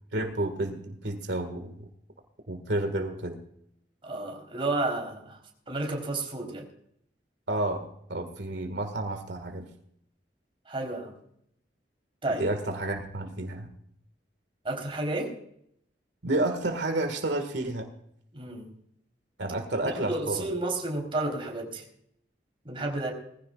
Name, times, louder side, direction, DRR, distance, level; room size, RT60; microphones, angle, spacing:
voice 1, 0.1-1.9 2.5-3.4 7.5-9.7 12.4-13.7 16.2-17.9 19.4-20.5, right 2 dB, 85° right, 6 dB, 1.9 m, -30 dB
voice 2, 4.0-5.4 5.7-6.7 10.7-11.1 12.2-12.4 14.6-15.4 18.3-18.7 20.1-21.8 22.6-23.1, right 2 dB, 30° right, 1 dB, 3.9 m, -31 dB
20.5 x 15.5 x 2.5 m, 0.70 s
head